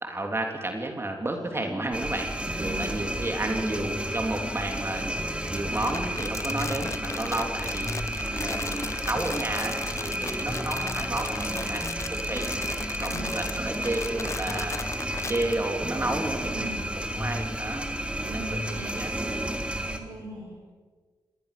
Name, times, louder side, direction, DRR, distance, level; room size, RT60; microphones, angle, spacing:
voice 1, 0.0-2.3 2.6-5.2 5.5-7.9 8.3-12.5 13.0-14.8 15.3-19.1, right 2 dB, 30° right, 3 dB, 3.5 m, -32 dB
sound 1, 1.3-18.9, left 1 dB, 10° left, 0.9 m, -40 dB
sound 2, 1.9-20.0, right 1 dB, 15° right, 3.2 m, -32 dB
voice 2, 2.7-3.0 3.4-3.5 13.0-13.3 16.4-16.7 18.2-19.0 19.8-20.6, right 2 dB, 85° right, -5 dB, 6.9 m, -39 dB
Crumpling crinkling, 5.5-15.5, left 4 dB, 35° left, 0.6 m, -37 dB
25.0 x 19.5 x 7.0 m, 1.5 s
cardioid pair, 55°, 8 cm